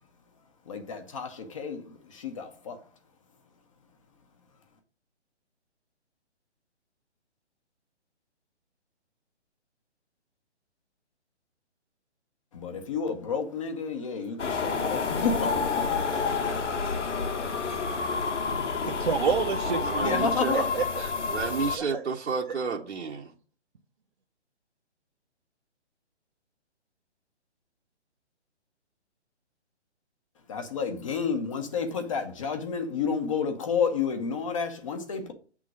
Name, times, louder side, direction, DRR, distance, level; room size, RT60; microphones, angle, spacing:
voice 1, 0.7-2.8 12.5-16.7 17.0-17.1 20.0-20.7 30.5-35.3, left 5 dB, 30° left, 1.0 m, -31 dB
sound 1, 14.4-21.8, left 5 dB, 90° left, 1.4 m, -29 dB
voice 2, 18.8-20.2 20.5-21.0 21.8-22.0, right 6 dB, 45° right, 0.7 m, -29 dB
voice 3, 19.6-20.6 21.0-23.3, right 5 dB, 85° right, 1.2 m, -32 dB
8.3 x 3.7 x 6.2 m
hypercardioid pair, 165°, 35 cm